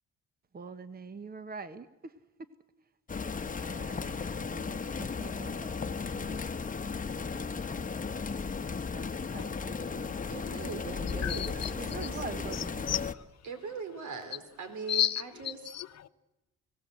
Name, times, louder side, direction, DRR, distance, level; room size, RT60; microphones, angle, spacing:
voice 1, 0.5-2.1 3.6-6.5 7.2-7.6 8.9-10.1 11.8-12.9, right 4 dB, 30° right, 12 dB, 1.2 m, -45 dB
sound 1, 3.1-13.1, left 5 dB, 25° left, 1.1 m, -35 dB
voice 2, 9.4-10.1 11.2-11.7 12.0-12.1 12.5-13.2 14.9-16.1, left 11 dB, 60° left, 12 dB, 0.9 m, -34 dB
voice 3, 10.3-12.5 13.5-15.6, right 5 dB, 70° right, 8 dB, 3.9 m, -41 dB
29.0 x 17.0 x 8.0 m, 1.1 s
cardioid pair, 90°, 30 cm